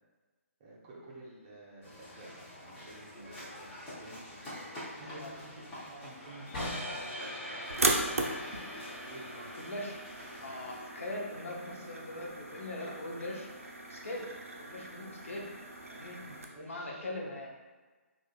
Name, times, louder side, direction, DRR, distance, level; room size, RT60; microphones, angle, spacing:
voice 1, 0.6-3.7 4.0-8.5 9.1-9.8 16.2-17.1, right 2 dB, 25° right, -5 dB, 0.6 m, -52 dB
sound 1, 1.8-10.8, left 1 dB, 10° left, 0.8 m, -47 dB
sound 2, 6.5-12.5, left 1 dB, 35° left, 1.1 m, -43 dB
sound 3, 7.7-16.5, right 2 dB, 75° right, 0.4 m, -37 dB
voice 2, 9.6-10.0 10.4-13.5 13.9-14.3 14.6-15.5 15.9-16.2 16.6-17.5, left 1 dB, 65° left, -1 dB, 0.6 m, -41 dB
2.4 x 2.4 x 2.3 m, 1.3 s
figure-of-eight pair, 135°, 8 cm